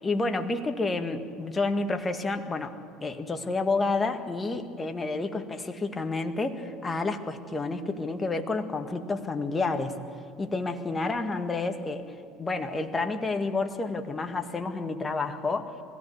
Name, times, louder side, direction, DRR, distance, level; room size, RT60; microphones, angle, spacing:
voice 1, 0.0-2.7 3.0-10.0 10.4-12.0 12.4-15.7, left 3 dB, 25° left, 6 dB, 1.9 m, -29 dB
21.5 x 16.5 x 8.5 m, 2.2 s
hypercardioid pair, 70°, 0 cm